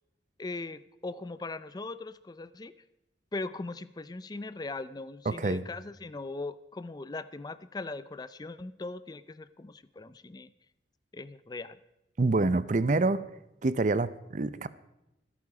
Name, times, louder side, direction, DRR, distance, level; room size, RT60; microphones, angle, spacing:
voice 1, 0.4-2.7 3.3-10.5 11.1-11.8, left 3 dB, 20° left, 15 dB, 0.4 m, -39 dB
voice 2, 5.3-5.6 12.2-13.2 13.6-14.7, right 3 dB, 45° right, 16 dB, 0.6 m, -26 dB
25.5 x 8.7 x 4.9 m, 0.91 s
head